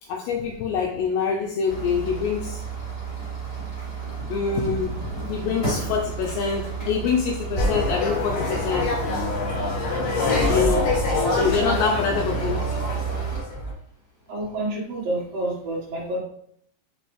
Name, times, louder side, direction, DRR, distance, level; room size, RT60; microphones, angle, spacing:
voice 1, 0.0-2.6 4.3-8.9 10.5-10.9 11.3-12.6, left 5 dB, 85° left, 1 dB, 2.5 m, -25 dB
sound 1, 1.7-13.4, right 5 dB, 50° left, 0.4 m, -32 dB
sound 2, 7.6-13.7, left 2 dB, 65° left, 2.5 m, -25 dB
voice 2, 14.3-16.2, right 1 dB, 75° right, -5 dB, 1.4 m, -28 dB
6.1 x 5.3 x 3.2 m, 0.66 s
omnidirectional pair, 5.5 m